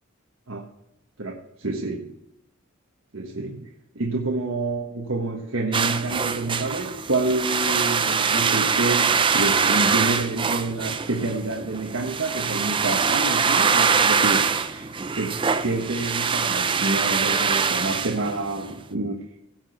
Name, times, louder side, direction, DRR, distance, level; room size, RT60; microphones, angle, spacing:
voice 1, 1.2-2.1 3.1-19.2, right 2 dB, 75° right, 1.4 m, -28 dB
sound 1, 5.7-18.7, right 5 dB, 25° right, 0.5 m, -23 dB
16.5 x 6.1 x 4.5 m
head